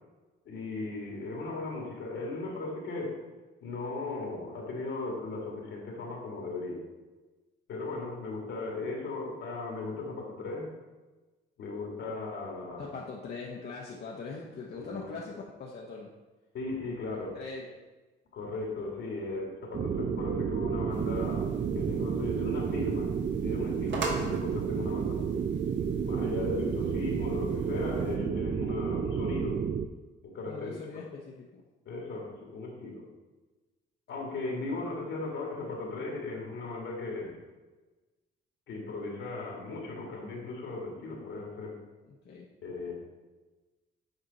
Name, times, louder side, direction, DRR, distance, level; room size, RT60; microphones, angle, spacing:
voice 1, 0.5-3.2 3.6-6.8 7.7-10.7 11.6-12.9 14.7-15.2 16.5-17.4 18.3-23.1 23.4-25.3 26.0-29.6 30.2-30.8 31.9-33.0 34.1-37.4 38.7-41.8 42.6-43.0, left 3 dB, 75° left, 0 dB, 2.0 m, -37 dB
voice 2, 12.8-16.1 17.3-17.8 30.5-31.2 31.5-31.6 42.1-42.5, left 4 dB, 55° left, -2 dB, 0.9 m, -41 dB
sound 1, 19.7-29.9, right 7 dB, 35° right, 0.4 m, -31 dB
sound 2, 20.9-28.2, right 3 dB, 65° right, 1.5 m, -43 dB
8.1 x 4.4 x 4.0 m, 1.2 s
cardioid pair, 90°, 20 cm